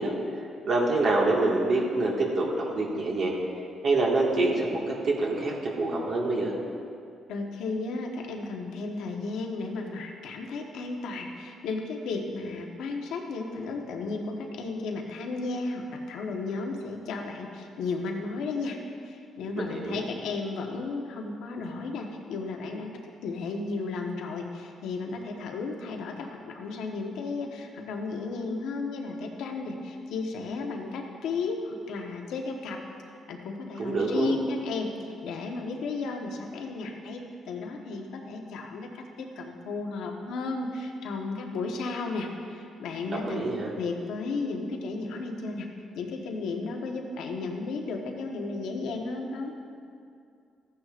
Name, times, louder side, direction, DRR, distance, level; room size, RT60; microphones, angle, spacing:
voice 1, 0.0-3.4 3.8-6.5 19.6-20.0 33.8-34.3 43.1-43.7, right 2 dB, 55° right, -3 dB, 1.8 m, -26 dB
voice 2, 7.3-18.8 19.0-32.8 33.3-43.4 43.8-45.7 45.9-49.5, left 3 dB, 85° left, 2 dB, 1.1 m, -34 dB
14.5 x 9.6 x 2.5 m, 2.4 s
cardioid pair, 90°, 0 cm